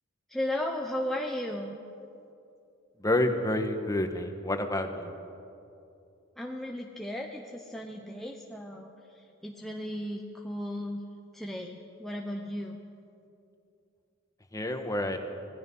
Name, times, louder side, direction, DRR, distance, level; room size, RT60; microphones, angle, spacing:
voice 1, 0.3-1.8 6.4-11.0 11.3-12.8, left 1 dB, ahead, 0 dB, 1.0 m, -35 dB
voice 2, 3.0-5.1 14.5-15.2, left 1 dB, 15° left, 6 dB, 1.4 m, -29 dB
25.5 x 18.0 x 5.6 m, 2.6 s
head